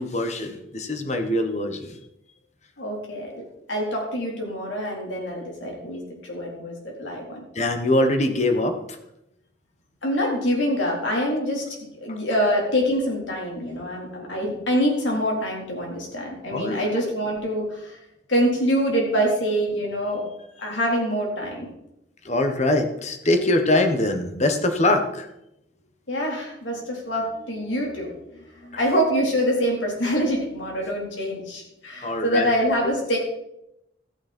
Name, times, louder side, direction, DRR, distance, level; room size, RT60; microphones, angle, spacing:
voice 1, 0.0-1.9 7.5-8.8 16.5-16.8 22.2-25.3 32.0-32.5 32.8-32.9, left 1 dB, 40° left, 6 dB, 1.3 m, -23 dB
voice 2, 2.8-3.3 3.7-6.0 6.3-7.4 10.0-11.6 12.0-18.0 18.3-20.2 20.6-21.7 26.1-33.2, equal, 90° left, -2 dB, 4.0 m, -25 dB
13.5 x 9.4 x 4.4 m, 0.85 s
head